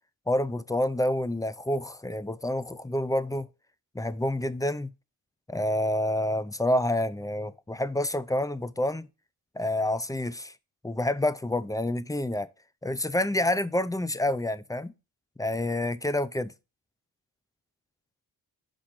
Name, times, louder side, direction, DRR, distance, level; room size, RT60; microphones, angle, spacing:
voice 1, 0.3-3.5 3.9-4.9 5.5-9.1 9.6-10.5 10.8-12.5 12.8-14.9 15.4-16.5, left 1 dB, 10° left, 0.5 m, -28 dB
5.8 x 5.2 x 4.9 m
supercardioid pair, 40°, 49 cm